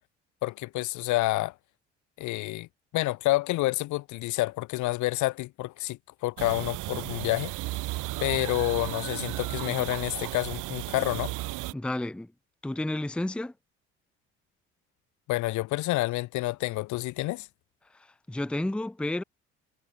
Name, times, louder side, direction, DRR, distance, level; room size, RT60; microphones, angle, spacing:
voice 1, 0.4-1.5 2.2-2.7 2.9-7.5 8.2-11.3 15.3-17.5, left 19 dB, 55° left, 1.1 m, -28 dB
sound 1, 6.4-11.7, right 20 dB, 60° right, 1.9 m, -34 dB
voice 2, 11.7-12.3 12.6-13.5 18.3-19.2, left 1 dB, 5° left, 0.7 m, -31 dB
figure-of-eight pair, 55°, 35 cm